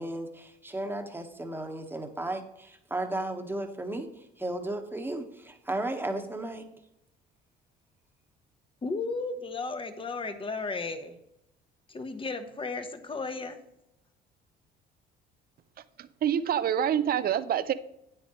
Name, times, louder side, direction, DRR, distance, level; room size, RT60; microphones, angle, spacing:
voice 1, 0.0-6.6, right 1 dB, 10° right, 4 dB, 1.3 m, -34 dB
voice 2, 8.8-11.2 11.9-13.6, left 3 dB, 25° left, 8 dB, 1.2 m, -34 dB
voice 3, 16.0-17.7, right 9 dB, 50° right, 13 dB, 0.6 m, -26 dB
9.2 x 8.7 x 3.1 m, 0.82 s
cardioid pair, 95°, 20 cm